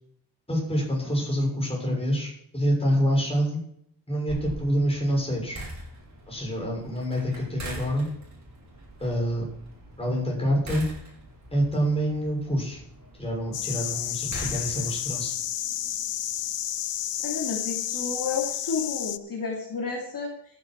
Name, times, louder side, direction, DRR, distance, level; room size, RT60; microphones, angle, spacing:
voice 1, 0.5-3.6 4.1-5.6 6.3-8.1 9.0-9.5 10.0-10.8 11.5-12.8 13.2-15.4, equal, 15° left, -2 dB, 6.7 m, -26 dB
sound 1, 4.3-15.2, right 1 dB, 40° right, 5.6 m, -43 dB
sound 2, 13.5-19.2, left 12 dB, 80° left, 0.6 m, -31 dB
voice 2, 17.2-20.3, left 4 dB, 50° left, -2 dB, 2.8 m, -31 dB
14.0 x 10.5 x 4.6 m, 0.70 s
wide cardioid pair, 165°, 42 cm